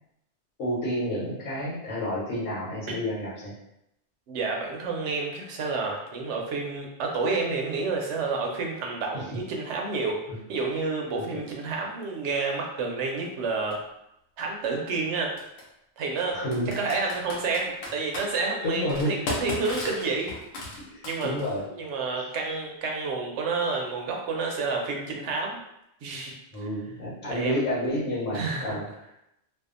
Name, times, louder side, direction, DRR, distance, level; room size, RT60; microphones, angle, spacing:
voice 1, 0.6-3.5 9.1-9.4 10.3-10.4 11.1-11.4 16.3-17.0 18.6-19.1 20.9-21.6 26.5-28.9, equal, 90° left, -8 dB, 1.2 m, -30 dB
voice 2, 4.3-10.2 10.5-13.8 14.4-15.4 16.0-16.4 16.8-20.3 21.0-21.3 21.8-25.6 26.0-26.7 27.3-27.6 28.3-28.8, right 4 dB, 75° right, 0 dB, 0.9 m, -29 dB
Computer keyboard, 13.7-13.8 15.4-15.6 16.5-18.3 18.9-21.6, left 1 dB, 65° left, 0.9 m, -35 dB
2.6 x 2.3 x 2.4 m, 0.82 s
omnidirectional pair, 1.2 m